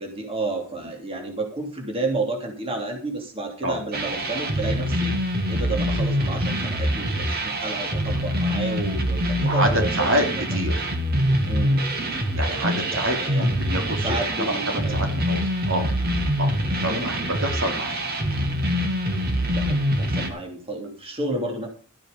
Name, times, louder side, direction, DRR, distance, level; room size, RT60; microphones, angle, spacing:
voice 1, 0.0-5.1 5.5-10.4 11.5-12.2 12.5-13.5 14.0-15.0 16.8-17.4 19.5-21.7, right 2 dB, 30° right, 2 dB, 2.9 m, -31 dB
sound 1, 3.9-20.3, equal, 50° right, 2.4 m, -25 dB
voice 2, 10.5-10.9 12.3-14.2 14.5-16.5 16.8-18.0, right 1 dB, 65° right, 3 dB, 3.4 m, -27 dB
13.5 x 9.0 x 5.3 m, 0.38 s
head